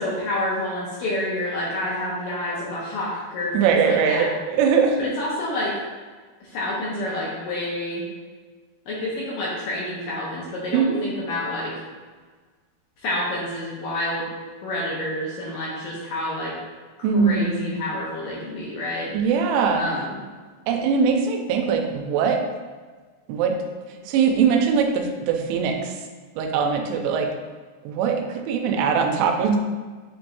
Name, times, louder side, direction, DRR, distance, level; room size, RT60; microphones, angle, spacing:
voice 1, 0.0-4.3 5.0-5.7 6.4-8.0 8.9-11.7 13.0-14.3 14.6-16.5 17.0-19.1 19.8-20.2, left 1 dB, 75° left, -6 dB, 2.1 m, -28 dB
voice 2, 3.5-5.0 10.7-11.0 17.0-17.8 19.1-19.9 20.7-22.4 23.3-23.5 24.1-25.9 26.4-27.3 27.8-29.6, right 6 dB, 90° right, 4 dB, 3.0 m, -21 dB
7.9 x 4.7 x 2.6 m, 1.4 s
omnidirectional pair, 5.1 m